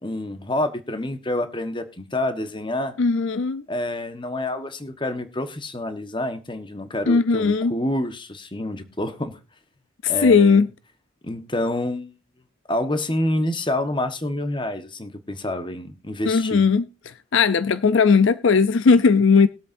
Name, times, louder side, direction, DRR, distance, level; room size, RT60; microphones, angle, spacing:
voice 1, 0.0-3.0 3.7-9.3 10.1-10.7 11.2-12.1 12.7-16.7, left 1 dB, 20° left, 1.2 m, -27 dB
voice 2, 3.0-3.6 7.1-7.7 10.0-10.7 16.3-16.9 17.3-19.5, left 5 dB, 60° left, 0.5 m, -17 dB
20.5 x 8.2 x 2.6 m
head